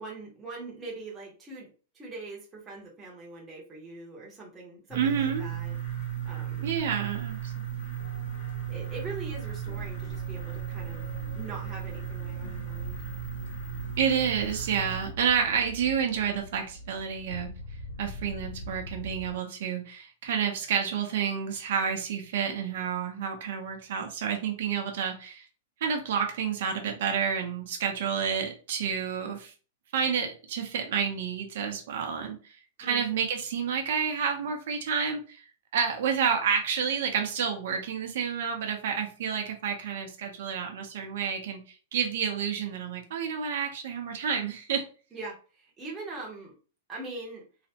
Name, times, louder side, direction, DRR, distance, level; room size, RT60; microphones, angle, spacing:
voice 1, 0.0-6.7 8.7-11.1 11.3-13.0 32.8-33.1 45.1-46.6 46.9-47.4, right 3 dB, 10° right, -3 dB, 0.7 m, -42 dB
sound 1, 4.9-15.1, right 10 dB, 35° left, 0.7 m, -36 dB
voice 2, 4.9-5.4 6.6-8.0 14.0-17.5 18.0-25.5 25.8-29.5 29.9-35.4 35.7-44.8, right 7 dB, 50° right, 3 dB, 0.6 m, -29 dB
sound 2, 8.0-19.3, equal, 70° left, 1.4 m, -42 dB
3.1 x 2.0 x 2.7 m, 0.37 s
supercardioid pair, 175°, 0 cm